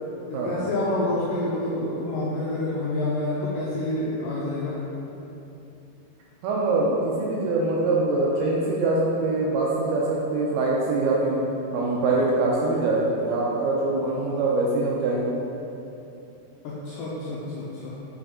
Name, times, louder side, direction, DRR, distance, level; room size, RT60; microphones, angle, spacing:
voice 1, 0.3-4.8 16.6-17.9, left 1 dB, 85° left, -7 dB, 1.9 m, -28 dB
voice 2, 6.4-11.4 11.7-15.3, right 2 dB, 80° right, -4 dB, 2.4 m, -23 dB
7.0 x 4.4 x 3.7 m, 2.9 s
omnidirectional pair, 4.7 m